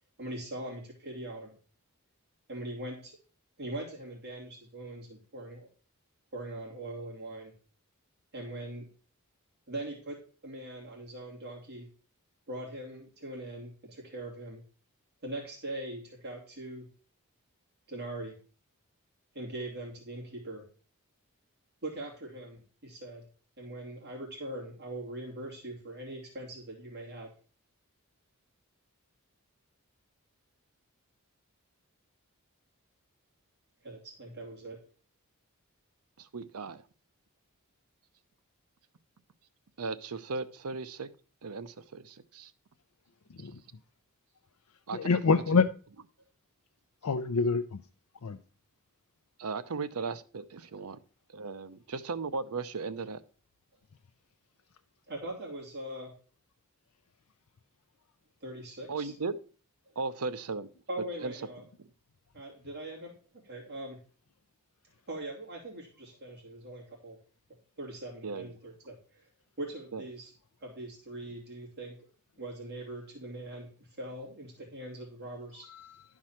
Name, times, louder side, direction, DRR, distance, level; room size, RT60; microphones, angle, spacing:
voice 1, 0.2-1.5 2.5-3.2 3.6-5.7 6.3-7.5 8.3-8.9 9.7-11.9 12.5-14.6 15.2-16.9 17.9-18.4 19.3-20.6 21.8-23.2 23.6-27.3 33.8-34.8 55.1-56.2 58.4-59.1 60.9-61.6 62.3-63.2 63.4-64.0 65.1-67.2 67.8-69.2 69.6-70.3 70.6-72.0 72.4-75.7, right 1 dB, 50° right, 2.8 m, -41 dB
voice 2, 36.2-36.8 39.8-41.1 41.4-42.5 44.9-45.2 45.5-45.6 49.4-51.0 51.3-53.2 58.9-59.4 60.0-60.7 61.2-61.3 61.8-61.9 68.2-68.5 69.9-70.1, right 4 dB, 80° right, 0.7 m, -36 dB
voice 3, 44.9-45.7 47.0-47.8 48.2-48.4 75.7-76.0, left 4 dB, 75° left, 0.5 m, -26 dB
11.5 x 4.7 x 5.8 m
head